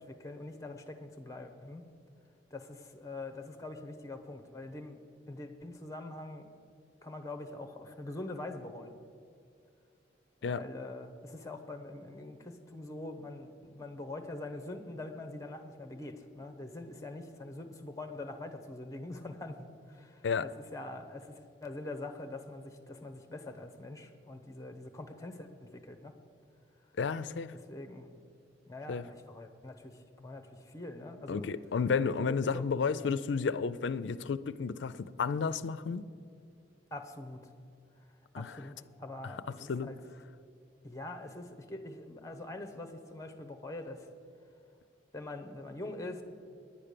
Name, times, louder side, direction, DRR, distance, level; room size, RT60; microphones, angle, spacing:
voice 1, 0.0-1.8 2.5-5.0 5.3-6.5 7.0-9.0 10.4-26.1 27.5-28.1 28.7-31.5 31.9-32.6 33.0-33.1 36.9-37.5 38.3-40.0 40.8-44.2 45.1-46.2, left 2 dB, 15° left, 8 dB, 0.8 m, -44 dB
voice 2, 27.0-27.5 28.9-29.0 31.3-36.0 38.3-38.5 39.7-39.9, left 5 dB, 70° left, 14 dB, 0.4 m, -32 dB
10.0 x 8.8 x 6.7 m, 2.4 s
head